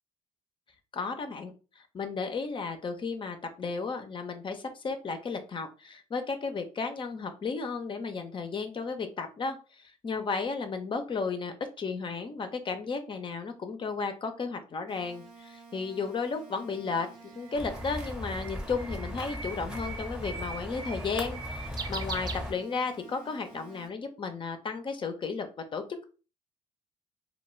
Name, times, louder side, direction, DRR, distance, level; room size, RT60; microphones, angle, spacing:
voice 1, 0.9-17.1 17.4-25.5 25.7-26.0, left 4 dB, 35° left, 7 dB, 0.5 m, -34 dB
sound 1, 14.9-23.9, right 5 dB, 65° right, 0.9 m, -51 dB
Bird, 16.8-23.0, right 4 dB, 30° right, 0.4 m, -42 dB
sound 2, 17.5-22.5, left 1 dB, 5° right, 0.7 m, -38 dB
2.2 x 2.2 x 3.1 m, 0.34 s
supercardioid pair, 60°, 14 cm